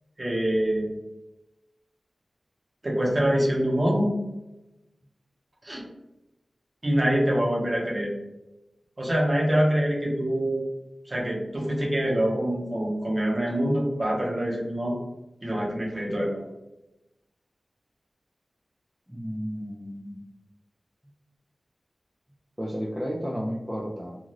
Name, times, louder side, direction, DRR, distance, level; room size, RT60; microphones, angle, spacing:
voice 1, 0.2-0.9 2.8-4.1 5.6-5.8 6.8-8.1 9.0-10.6 11.1-15.0 15.4-16.4, right 1 dB, 35° right, -3 dB, 0.8 m, -25 dB
voice 2, 19.1-20.2 22.6-24.2, equal, 5° right, -3 dB, 0.4 m, -32 dB
2.5 x 2.3 x 3.1 m, 0.99 s
wide cardioid pair, 70°, 0 cm